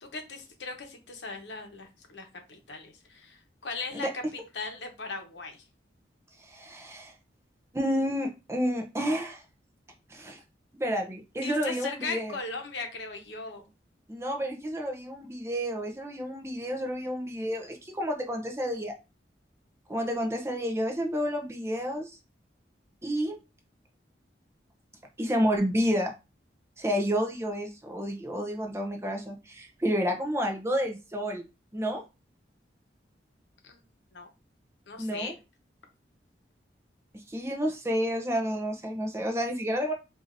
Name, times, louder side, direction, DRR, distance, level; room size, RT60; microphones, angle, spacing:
voice 1, 0.0-4.2 4.5-5.6 11.4-13.6 33.6-33.8 34.1-34.3 34.9-35.4, left 3 dB, 85° left, 1.0 m, -38 dB
voice 2, 6.4-7.1 7.7-9.4 10.1-10.4 10.8-12.4 14.1-18.9 19.9-22.2 23.0-23.4 25.2-26.1 26.8-31.4 31.7-32.0 35.0-35.3 37.3-39.9, equal, 15° right, 0.6 m, -30 dB
4.7 x 2.6 x 2.6 m
head